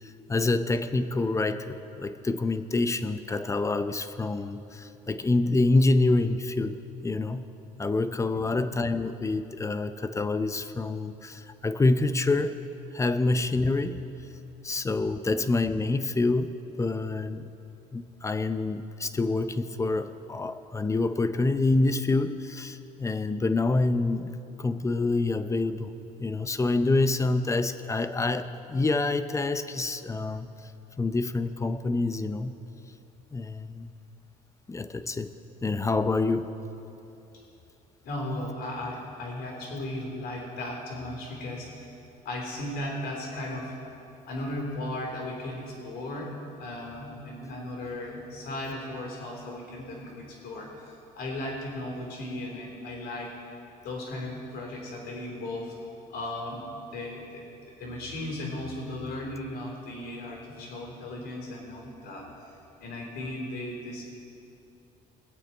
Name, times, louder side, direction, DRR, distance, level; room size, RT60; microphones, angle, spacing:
voice 1, 0.0-6.8 7.0-7.5 7.8-12.6 12.9-14.0 14.6-17.4 17.9-25.9 26.2-30.5 31.0-32.5 33.3-33.9 34.7-35.3 35.6-36.6, left 3 dB, 15° left, 10 dB, 0.6 m, -27 dB
voice 2, 8.3-8.7 38.0-42.0 42.2-43.7 44.3-53.4 53.8-55.7 56.1-57.5 57.8-62.3 62.8-64.0, left 1 dB, 80° left, -2 dB, 3.7 m, -36 dB
21.5 x 8.5 x 4.5 m, 2.8 s
cardioid pair, 110°, 17 cm